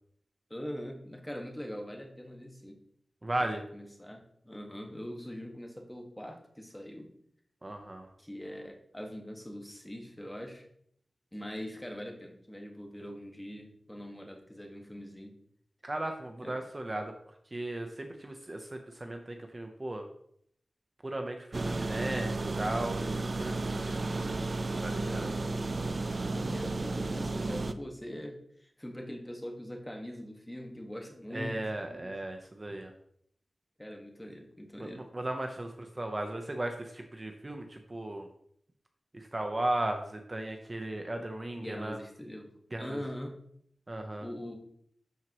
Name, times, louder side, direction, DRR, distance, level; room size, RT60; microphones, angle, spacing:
voice 1, 0.5-2.8 3.7-7.1 8.2-10.7 11.3-15.4 16.4-16.6 25.0-32.1 33.8-35.0 41.6-42.5 42.8-43.3 44.2-44.5, equal, 10° left, 2 dB, 1.6 m, -42 dB
voice 2, 3.2-3.6 7.6-8.1 15.8-17.1 17.5-20.1 21.0-24.0 24.8-25.3 31.3-32.9 34.8-38.3 39.1-42.0 42.7-43.0 43.9-44.3, right 1 dB, 30° right, 4 dB, 0.8 m, -36 dB
sound 1, 21.5-27.7, right 3 dB, 50° right, 0.5 m, -33 dB
12.0 x 4.5 x 3.0 m, 0.68 s
cardioid pair, 60°, 0 cm